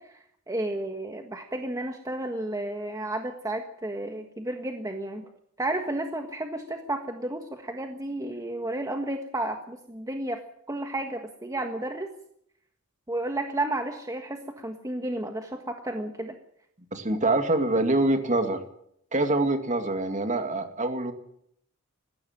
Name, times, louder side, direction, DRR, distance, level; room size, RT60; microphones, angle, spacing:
voice 1, 0.0-5.3 5.6-10.4 10.7-12.1 13.1-16.4, right 1 dB, 15° right, 4 dB, 1.5 m, -32 dB
voice 2, 16.9-18.6 19.1-21.1, right 2 dB, 35° right, 6 dB, 2.4 m, -25 dB
20.0 x 15.5 x 9.1 m, 0.71 s
head